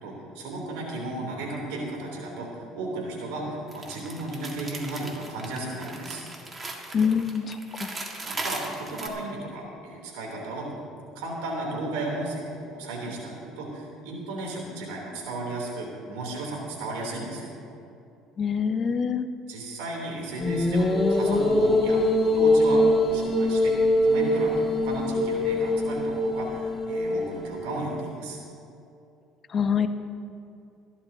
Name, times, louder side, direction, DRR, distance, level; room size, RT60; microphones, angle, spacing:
voice 1, 0.0-6.2 8.2-10.7 11.1-17.5 19.5-23.7 24.0-28.4, right 2 dB, 90° right, -1 dB, 3.2 m, -34 dB
sound 1, 3.7-9.1, right 2 dB, 25° right, 1.8 m, -37 dB
voice 2, 6.9-7.9 18.4-19.3 29.5-29.9, left 6 dB, 40° left, 9 dB, 0.9 m, -25 dB
sound 2, 20.4-27.8, left 1 dB, 20° left, 2.1 m, -23 dB
22.0 x 11.5 x 2.8 m, 2.6 s
supercardioid pair, 90°, 0 cm